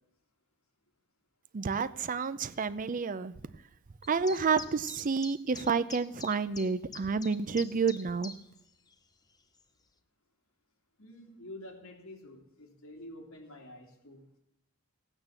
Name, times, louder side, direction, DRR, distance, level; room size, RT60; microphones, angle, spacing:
voice 1, 1.5-3.3 4.1-8.3, right 5 dB, 40° right, 15 dB, 0.5 m, -30 dB
sound 1, 4.0-8.6 8.9-9.0 9.6-9.7, left 4 dB, 20° left, 0.8 m, -45 dB
voice 2, 11.0-14.4, left 1 dB, 75° left, 0 dB, 3.0 m, -48 dB
16.0 x 8.9 x 7.1 m, 0.82 s
head